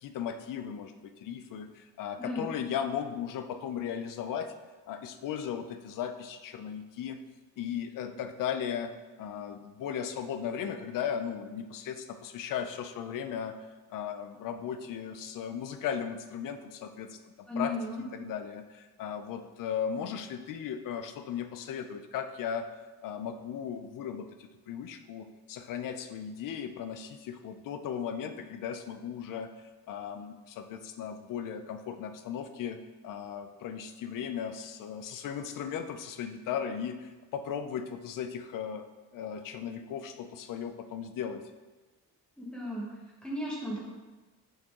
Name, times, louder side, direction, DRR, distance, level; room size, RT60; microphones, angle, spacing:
voice 1, 0.0-4.5 4.9-7.2 7.6-13.5 13.9-22.7 23.0-24.3 24.7-29.5 29.9-32.8 33.0-38.9 39.1-41.4, left 8 dB, 60° left, 9 dB, 0.5 m, -36 dB
voice 2, 2.2-2.5 17.5-18.0 42.4-42.9 43.2-43.8, left 1 dB, ahead, -5 dB, 1.4 m, -34 dB
6.3 x 4.5 x 3.6 m, 1.2 s
cardioid pair, 175°, 38 cm